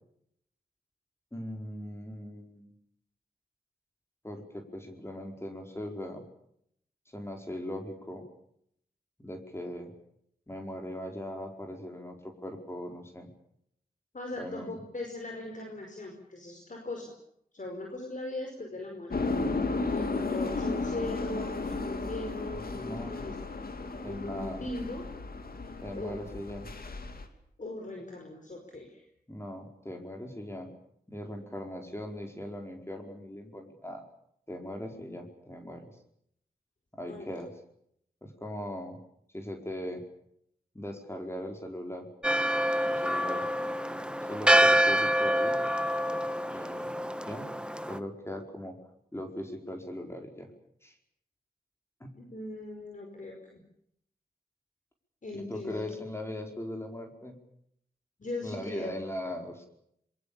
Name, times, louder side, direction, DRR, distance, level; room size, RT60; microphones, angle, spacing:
voice 1, 1.3-2.7 4.2-6.2 7.1-8.3 9.2-9.9 10.5-13.3 14.4-14.8 22.6-23.2 24.0-24.6 25.8-26.7 29.3-30.7 31.1-34.0 34.5-35.9 36.9-37.5 38.2-39.0 39.3-40.0 40.7-42.1 42.8-43.4 44.3-45.6 46.5-46.9 47.2-47.5 47.9-48.8 49.1-50.5 50.8-50.9 52.0-52.1 55.3-57.3 58.4-59.7, left 1 dB, 15° left, 3 dB, 4.8 m, -39 dB
voice 2, 14.1-17.1 17.5-19.4 19.9-23.4 24.0-25.0 25.9-26.2 27.6-29.0 37.1-37.3 43.2-43.3 52.2-53.6 55.2-55.9 58.2-58.9, left 2 dB, 55° left, 2 dB, 5.0 m, -39 dB
sound 1, 19.1-27.2, left 3 dB, 70° left, 2.8 m, -34 dB
Church bell, 42.2-48.0, equal, 5° right, 1.3 m, -26 dB
26.5 x 23.5 x 7.1 m, 0.72 s
wide cardioid pair, 65°, 16 cm